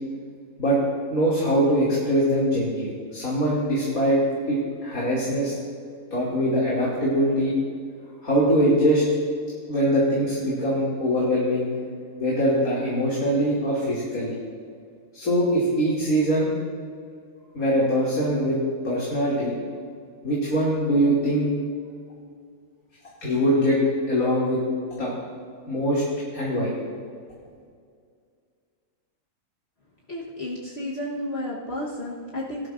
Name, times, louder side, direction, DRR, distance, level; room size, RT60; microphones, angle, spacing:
voice 1, 1.1-4.2 4.5-5.5 6.1-7.5 8.2-9.0 9.7-11.7 12.2-14.4 15.1-16.5 17.5-18.6 18.8-19.5 20.2-21.5 23.2-23.8 24.1-24.6 25.0-25.1 25.7-26.0 26.3-26.7, equal, 85° left, -7 dB, 3.0 m, -22 dB
voice 2, 30.1-32.7, left 1 dB, 50° left, -4 dB, 1.5 m, -32 dB
19.0 x 12.0 x 2.5 m, 2.2 s
omnidirectional pair, 1.5 m